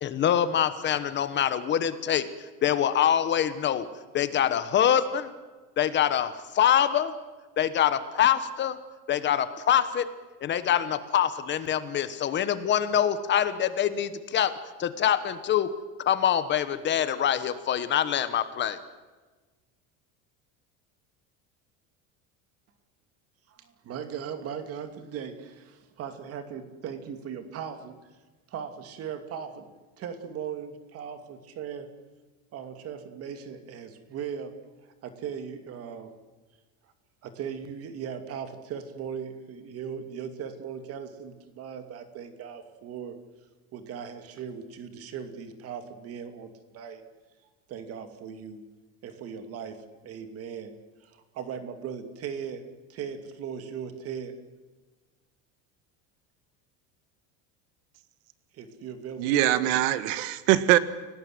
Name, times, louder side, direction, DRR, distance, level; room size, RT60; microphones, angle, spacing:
voice 1, 0.0-2.3 2.6-3.9 4.1-5.3 5.8-7.1 7.6-8.8 9.1-10.1 10.4-14.5 14.8-15.7 16.0-18.8, left 9 dB, 30° left, 12 dB, 1.1 m, -25 dB
voice 2, 23.5-28.0 28.5-29.7 30.0-31.9 32.5-34.5 34.8-36.1 37.2-43.2 43.7-47.0 47.7-48.6 49.0-50.7 51.0-54.3 58.5-59.7 60.3-60.4, right 7 dB, 40° right, 8 dB, 2.6 m, -38 dB
voice 3, 59.2-60.8, right 14 dB, 80° right, 14 dB, 1.6 m, -22 dB
30.0 x 18.5 x 7.8 m, 1.3 s
cardioid pair, 170°, 38 cm